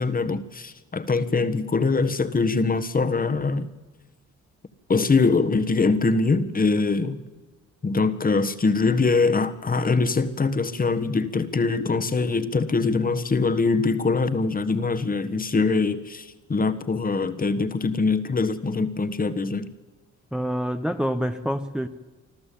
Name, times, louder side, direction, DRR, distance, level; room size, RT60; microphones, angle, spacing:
voice 1, 0.0-3.7 4.9-7.2 7.8-16.2 16.5-19.7, left 4 dB, 30° left, 11 dB, 1.5 m, -23 dB
voice 2, 20.3-21.9, equal, 5° right, 6 dB, 1.0 m, -26 dB
25.5 x 13.5 x 8.6 m, 1.2 s
cardioid pair, 90°, 30 cm